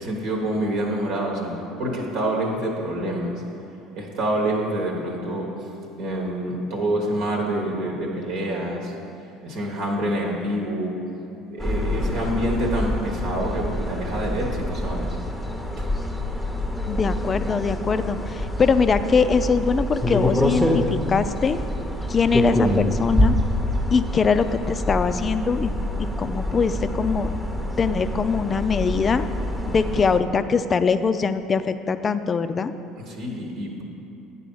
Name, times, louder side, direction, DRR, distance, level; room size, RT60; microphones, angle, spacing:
voice 1, 0.0-3.4 4.0-5.5 6.0-8.9 9.4-11.0 11.5-15.2 33.0-33.8, right 1 dB, 65° right, 0 dB, 1.2 m, -27 dB
sound 1, 11.6-30.2, left 1 dB, ahead, 0.8 m, -26 dB
voice 2, 16.9-21.6 22.1-23.4 23.9-25.7 26.2-27.3 27.8-29.3 29.7-32.7, left 5 dB, 35° left, 11 dB, 0.4 m, -22 dB
9.5 x 4.1 x 5.5 m, 2.8 s
hypercardioid pair, 65°, 0 cm